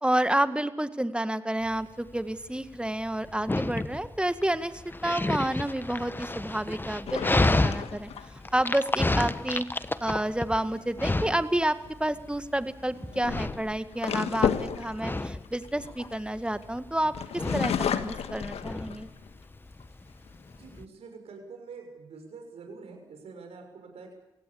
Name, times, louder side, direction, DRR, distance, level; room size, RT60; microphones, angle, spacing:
voice 1, 0.0-8.1 8.5-9.7 10.0-19.1, right 1 dB, 10° right, 11 dB, 1.8 m, -29 dB
Dog, 1.7-20.9, left 2 dB, 20° left, 1.3 m, -32 dB
sound 1, 7.1-8.7 11.6-11.9 12.9-16.6 17.1-19.3 19.8-19.9 20.3-20.8, left 8 dB, 70° left, 1.6 m, -32 dB
voice 2, 20.5-24.1, right 4 dB, 70° right, 4 dB, 6.4 m, -46 dB
26.0 x 17.0 x 8.6 m, 0.91 s
hypercardioid pair, 40°, 11 cm